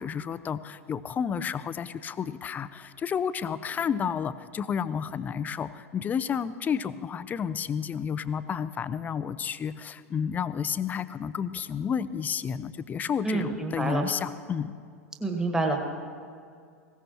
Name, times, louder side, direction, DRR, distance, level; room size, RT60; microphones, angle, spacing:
voice 1, 0.0-14.7, left 7 dB, 20° left, 15 dB, 0.5 m, -31 dB
voice 2, 13.2-14.1 15.2-15.8, right 2 dB, 10° right, 2 dB, 1.7 m, -27 dB
19.5 x 17.0 x 3.0 m, 2.2 s
figure-of-eight pair, 90°, 8 cm